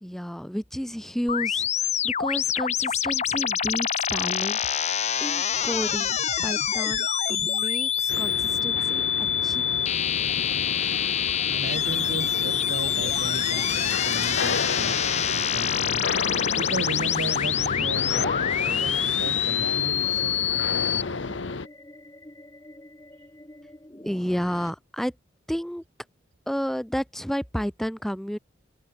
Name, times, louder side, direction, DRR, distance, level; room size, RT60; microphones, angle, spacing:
voice 1, 0.0-6.1 6.4-9.6 24.1-25.2 25.5-25.8 26.5-28.4, equal, ahead, 0.4 m, -31 dB
sound 1, 1.3-21.0, left 9 dB, 35° left, 0.9 m, -26 dB
sound 2, 8.1-21.7, left 4 dB, 70° left, 0.9 m, -32 dB
sound 3, 9.6-24.7, left 2 dB, 20° left, 1.2 m, -48 dB
voice 2, 11.5-16.1 16.6-21.4, right 2 dB, 70° right, 1.5 m, -36 dB
head